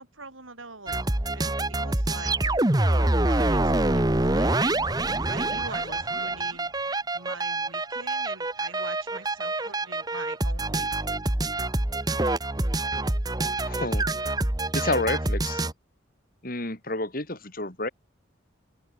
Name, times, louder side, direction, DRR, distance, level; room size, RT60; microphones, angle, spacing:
voice 1, 0.0-4.8 5.3-6.7 7.1-11.1, right 3 dB, 85° right, 7.9 m, -43 dB
sound 1, 0.9-15.7, right 2 dB, 20° right, 1.2 m, -26 dB
voice 2, 13.7-14.1 14.7-15.6 16.4-17.9, left 2 dB, 45° left, 3.6 m, -29 dB
open air
head